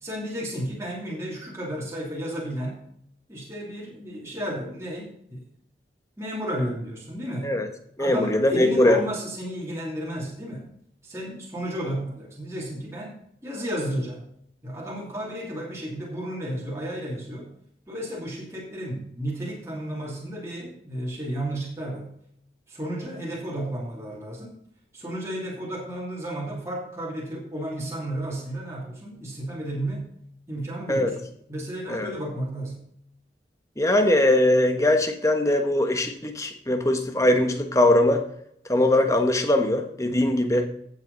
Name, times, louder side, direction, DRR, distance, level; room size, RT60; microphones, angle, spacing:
voice 1, 0.0-2.8 3.3-5.4 6.2-7.6 8.0-10.7 11.0-13.2 13.4-14.2 14.6-17.5 17.9-22.1 22.7-24.6 24.9-30.1 30.5-32.8, right 1 dB, 15° right, -4 dB, 2.9 m, -33 dB
voice 2, 8.0-9.0 30.9-31.1 31.9-32.1 33.8-38.2 38.7-40.7, left 1 dB, 15° left, 5 dB, 1.4 m, -21 dB
15.0 x 7.9 x 4.1 m, 0.71 s
head